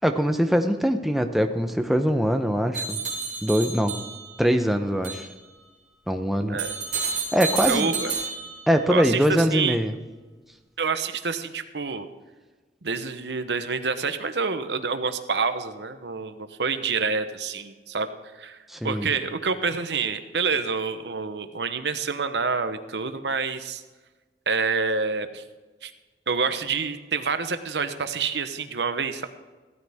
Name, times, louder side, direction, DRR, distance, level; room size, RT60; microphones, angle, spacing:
voice 1, 0.0-3.0 3.4-4.0 4.4-5.3 6.1-6.6 7.3-8.0 8.7-9.9 18.7-19.1, equal, ahead, 5 dB, 0.7 m, -22 dB
sound 1, 2.7-4.5 5.0-5.3 6.6-8.9, right 5 dB, 40° right, 3.3 m, -30 dB
voice 2, 7.7-8.1 8.9-9.8 10.8-12.1 12.8-18.1 18.4-18.6 18.8-23.8 24.5-25.4 25.8-25.9 26.3-29.3, right 5 dB, 85° right, 10 dB, 1.0 m, -27 dB
15.5 x 13.5 x 3.6 m, 1.3 s
head